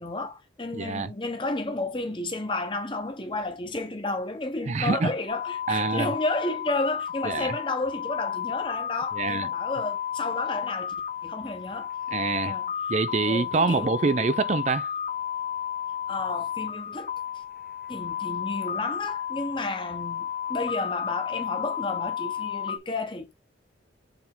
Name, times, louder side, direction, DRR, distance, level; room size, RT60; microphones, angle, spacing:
voice 1, 0.0-10.9 11.2-11.9 12.4-12.7 13.2-14.3 16.1-17.1 17.9-23.3, left 2 dB, 25° left, 1.1 m, -32 dB
voice 2, 0.7-1.1 4.7-5.1 5.7-6.1 7.2-7.5 9.2-9.5 12.1-12.5 12.9-14.9, right 4 dB, 35° right, 0.4 m, -25 dB
sound 1, 5.3-22.8, left 9 dB, 50° left, 1.1 m, -32 dB
6.9 x 3.7 x 3.7 m
head